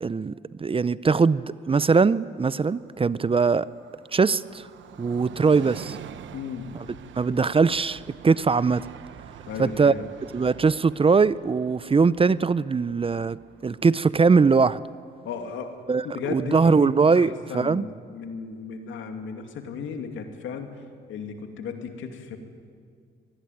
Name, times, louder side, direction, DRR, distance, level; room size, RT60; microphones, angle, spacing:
voice 1, 0.0-3.7 4.1-4.6 5.0-6.0 7.2-8.9 9.6-9.9 10.3-13.4 13.6-14.8 15.9-17.9, right 4 dB, 30° right, 18 dB, 0.6 m, -21 dB
Train, 2.4-15.7 16.0-16.1, right 9 dB, 75° right, 1.1 m, -46 dB
voice 2, 6.3-6.7 9.5-10.0 15.2-15.8 16.0-16.9 17.2-20.7 21.1-22.4, left 6 dB, 80° left, 5 dB, 2.7 m, -35 dB
23.5 x 19.5 x 9.3 m, 2.2 s
cardioid pair, 75°, 20 cm